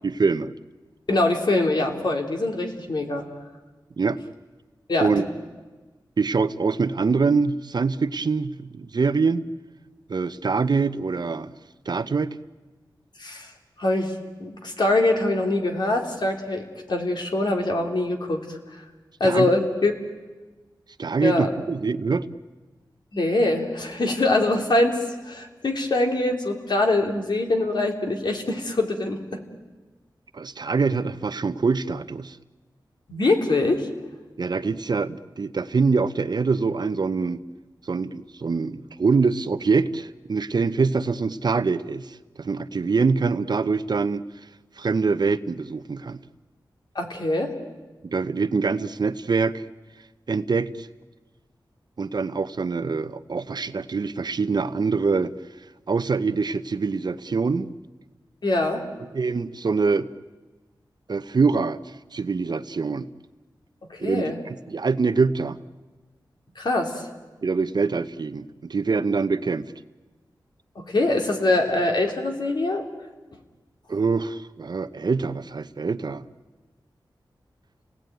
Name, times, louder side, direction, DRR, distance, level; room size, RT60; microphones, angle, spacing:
voice 1, 0.0-0.5 4.0-4.2 5.0-5.3 6.2-9.4 10.1-11.5 11.9-12.4 19.2-19.5 21.0-22.3 30.3-32.4 34.4-37.4 37.8-44.2 44.8-46.2 48.0-49.6 50.3-50.9 52.0-55.3 55.9-57.7 59.1-60.1 61.1-61.8 62.1-63.1 64.0-65.6 67.4-69.7 73.9-76.2, right 4 dB, 60° right, 12 dB, 0.8 m, -24 dB
voice 2, 1.1-3.3 4.9-5.2 13.2-13.5 13.8-14.1 14.4-18.6 19.2-19.9 21.2-21.5 23.1-25.0 25.2-29.4 33.1-33.9 46.9-47.5 58.4-58.8 63.9-64.4 66.5-67.0 70.7-72.9, left 2 dB, 65° left, 2 dB, 3.3 m, -23 dB
30.0 x 18.5 x 9.2 m, 1.3 s
wide cardioid pair, 90°, 8 cm